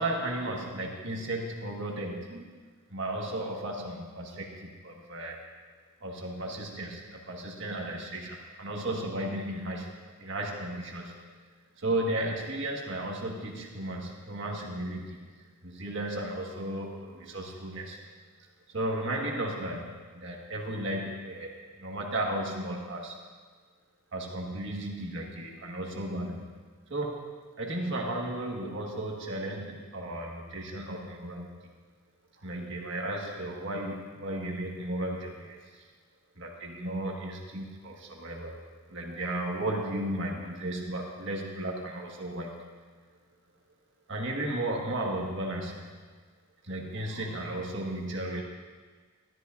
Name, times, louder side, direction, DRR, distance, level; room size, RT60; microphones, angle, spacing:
voice 1, 0.0-2.6 2.9-5.4 6.0-11.2 11.8-18.0 18.7-23.2 24.1-26.6 26.9-27.3 27.6-31.7 32.3-35.9 36.3-38.6 38.9-42.7 44.1-45.9 46.6-48.4, right 1 dB, 65° right, -1 dB, 1.6 m, -34 dB
13.5 x 12.5 x 2.6 m, 1.5 s
head